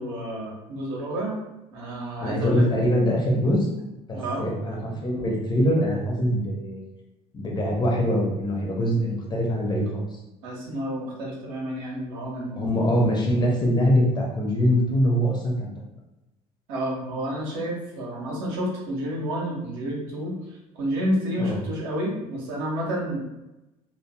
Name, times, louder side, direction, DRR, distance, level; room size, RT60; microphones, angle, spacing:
voice 1, 0.0-1.4 1.7-2.7 4.1-4.5 10.4-12.9 16.7-20.4 20.7-23.2, equal, 60° right, -3 dB, 0.8 m, -30 dB
voice 2, 2.2-3.7 4.1-6.8 7.3-10.0 12.5-15.7 21.4-21.6, equal, 20° left, -2 dB, 0.6 m, -23 dB
2.6 x 2.2 x 2.2 m, 0.97 s
figure-of-eight pair, 55°, 19 cm